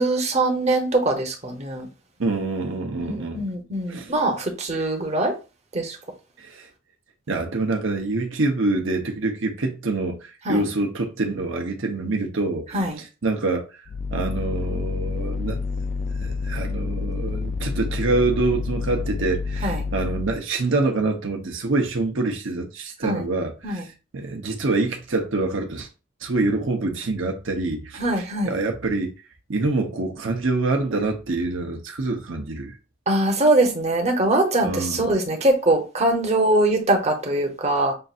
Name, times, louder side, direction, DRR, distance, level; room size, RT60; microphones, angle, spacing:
voice 1, 0.0-1.9 3.0-5.3 5.7-6.0 10.5-10.6 12.7-13.0 19.6-19.8 23.0-23.2 23.6-23.9 28.0-28.6 33.1-37.9, right 2 dB, 35° right, 1.0 m, -22 dB
voice 2, 2.2-3.4 3.9-4.1 4.7-4.9 6.4-6.7 7.3-13.7 14.1-15.6 16.2-23.9 24.1-25.9 26.2-29.1 29.5-32.7 34.6-35.1, right 3 dB, 70° right, 0.8 m, -26 dB
sound 1, 13.9-20.4, left 4 dB, 40° left, 0.3 m, -28 dB
6.5 x 2.6 x 2.5 m
head